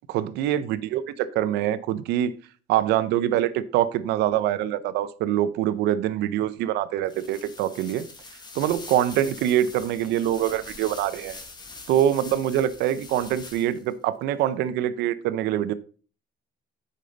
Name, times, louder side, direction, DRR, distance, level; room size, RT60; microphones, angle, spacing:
voice 1, 0.1-2.3 2.7-8.1 8.5-11.4 11.9-15.7, right 11 dB, 85° right, 15 dB, 0.6 m, -24 dB
sound 1, 7.0-13.9, left 3 dB, 25° left, 1.3 m, -43 dB
8.4 x 5.5 x 3.9 m, 0.39 s
cardioid pair, 110°, 17 cm